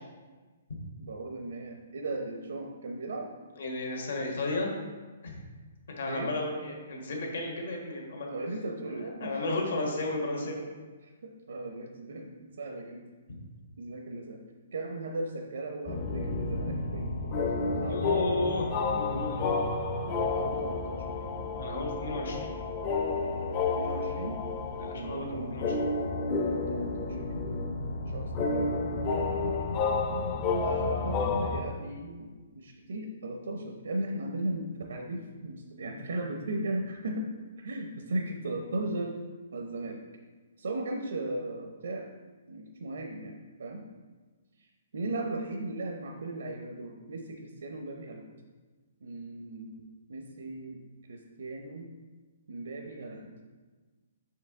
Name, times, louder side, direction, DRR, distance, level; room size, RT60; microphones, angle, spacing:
voice 1, 1.0-3.3 6.1-6.3 8.3-9.4 9.8-9.9 11.0-13.0 13.8-14.4 14.7-17.4 17.7-18.3 20.3-21.2 23.8-24.4 24.9-25.6 26.4-27.2 28.0-28.7 30.6-32.3 32.6-37.3 37.6-39.1 39.5-40.0 40.6-42.1 42.5-43.9 44.6-44.7 44.9-48.2 49.0-50.8 51.1-51.9 52.5-53.4, right 2 dB, 80° right, 2 dB, 0.7 m, -37 dB
voice 2, 3.6-4.7 5.2-5.3 5.9-8.3 9.2-10.7 17.9-19.7 21.5-22.5 24.8-25.8, left 2 dB, 65° left, 0 dB, 1.4 m, -33 dB
sound 1, 15.9-31.6, left 3 dB, 25° left, 0.5 m, -31 dB
5.9 x 4.7 x 3.6 m, 1.3 s
hypercardioid pair, 175°, 0 cm